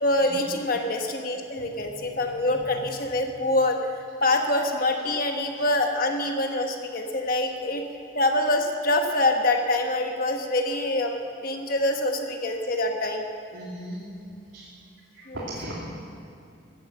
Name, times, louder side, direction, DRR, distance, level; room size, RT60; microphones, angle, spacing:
voice 1, 0.0-3.8 4.2-7.8 8.1-13.2 15.3-15.4, left 2 dB, 45° left, 3 dB, 1.3 m, -25 dB
voice 2, 13.5-14.0 14.5-14.6 15.1-15.8, right 1 dB, 85° right, -7 dB, 2.8 m, -37 dB
15.5 x 9.1 x 7.3 m, 2.5 s
head